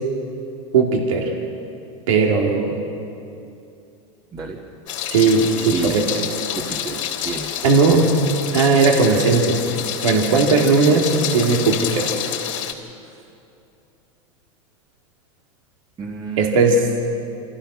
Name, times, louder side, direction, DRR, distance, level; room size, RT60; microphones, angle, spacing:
voice 1, 0.7-1.3 2.1-2.8 5.1-6.1 7.6-8.1 8.5-9.6 10.0-12.1 16.4-17.0, right 4 dB, 80° right, 0 dB, 2.6 m, -17 dB
Meow, 4.9-12.7, left 9 dB, 75° left, 3.1 m, -28 dB
voice 2, 6.5-7.5 16.0-16.7, right 5 dB, 25° right, 0 dB, 1.8 m, -30 dB
26.5 x 16.0 x 6.4 m, 2.7 s
hypercardioid pair, 110°, 17 cm